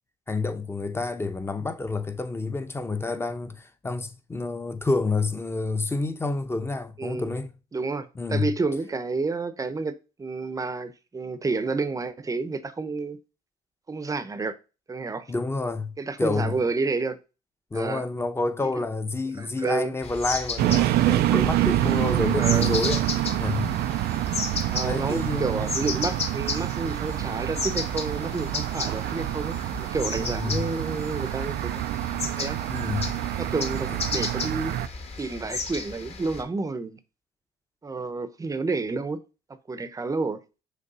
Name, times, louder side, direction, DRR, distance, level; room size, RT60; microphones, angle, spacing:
voice 1, 0.3-7.5 8.2-8.5 15.3-16.6 17.7-23.7 24.8-25.7 30.2-30.7 32.7-33.2 33.9-34.0, left 3 dB, 15° left, 0.8 m, -29 dB
voice 2, 7.0-7.3 7.7-13.2 13.9-14.6 14.9-15.3 16.0-17.2 17.7-18.0 19.4-19.9 22.4-22.7 24.7-31.8 32.4-32.6 33.4-34.7 35.2-37.0 37.8-39.2 39.7-40.4, right 3 dB, 20° right, 0.7 m, -30 dB
sound 1, 20.0-36.4, left 4 dB, 40° left, 1.3 m, -34 dB
sound 2, 20.6-34.9, right 15 dB, 70° right, 0.4 m, -27 dB
6.6 x 3.3 x 5.4 m
cardioid pair, 110°, 17 cm